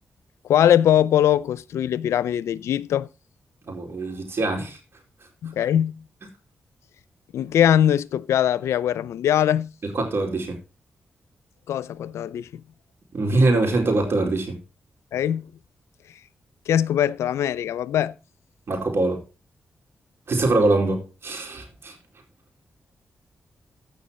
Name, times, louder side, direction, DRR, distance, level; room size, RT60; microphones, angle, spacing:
voice 1, 0.4-3.1 5.4-6.0 7.3-9.7 11.7-12.6 15.1-15.5 16.7-18.1, left 10 dB, 85° left, 0.5 m, -21 dB
voice 2, 3.7-4.8 9.8-10.6 13.1-14.6 18.7-19.2 20.3-21.9, right 2 dB, 60° right, 4.3 m, -23 dB
16.0 x 5.6 x 4.1 m
cardioid pair, 50°, 5 cm